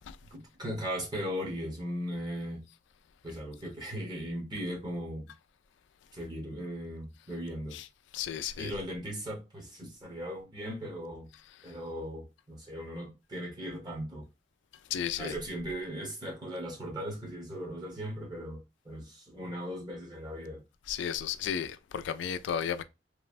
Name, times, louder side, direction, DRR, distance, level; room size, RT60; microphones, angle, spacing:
voice 1, 0.3-2.6 3.2-5.3 6.1-7.8 8.5-11.3 11.6-14.3 15.1-20.6, equal, 25° right, 1.1 m, -38 dB
voice 2, 8.1-8.7 14.9-15.3 20.9-22.8, left 8 dB, 85° left, 0.3 m, -33 dB
3.1 x 2.1 x 2.4 m
head